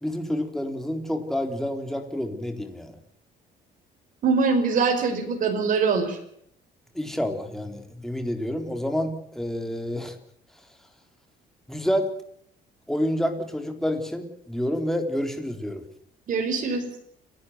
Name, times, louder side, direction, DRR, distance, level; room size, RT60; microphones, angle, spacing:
voice 1, 0.0-2.9 6.9-10.2 11.7-12.1 12.9-15.8, equal, ahead, 5 dB, 3.8 m, -28 dB
voice 2, 4.2-6.2 16.3-16.8, right 4 dB, 50° right, 3 dB, 5.3 m, -23 dB
29.5 x 12.0 x 8.1 m, 0.68 s
cardioid pair, 110°, 17 cm